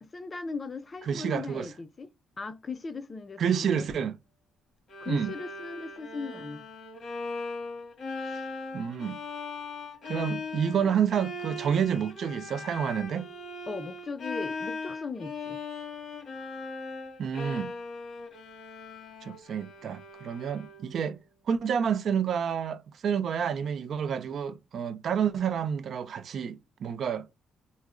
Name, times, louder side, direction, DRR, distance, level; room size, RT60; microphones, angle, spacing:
voice 1, 0.0-2.1 2.4-3.8 5.0-6.7 13.7-15.6, left 4 dB, 30° left, 0.4 m, -38 dB
voice 2, 1.1-1.7 3.4-4.2 5.1-5.3 8.7-9.2 10.1-13.3 17.2-17.7 19.2-21.2 21.5-27.3, right 7 dB, 55° right, 0.4 m, -29 dB
Bowed string instrument, 4.9-21.0, left 3 dB, 50° left, 1.4 m, -39 dB
4.5 x 2.1 x 2.4 m
cardioid pair, 110°, 0 cm